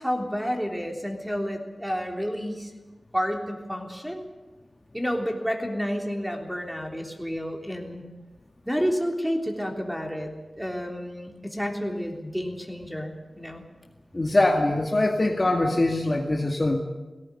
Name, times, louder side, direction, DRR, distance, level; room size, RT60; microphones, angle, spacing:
voice 1, 0.0-2.7 3.1-4.2 4.9-8.0 8.6-10.3 10.6-13.6, equal, 5° right, 2 dB, 3.6 m, -30 dB
voice 2, 14.1-16.8, left 2 dB, 30° left, 2 dB, 2.0 m, -23 dB
18.5 x 17.5 x 9.9 m, 1.2 s
wide cardioid pair, 80°, 0 cm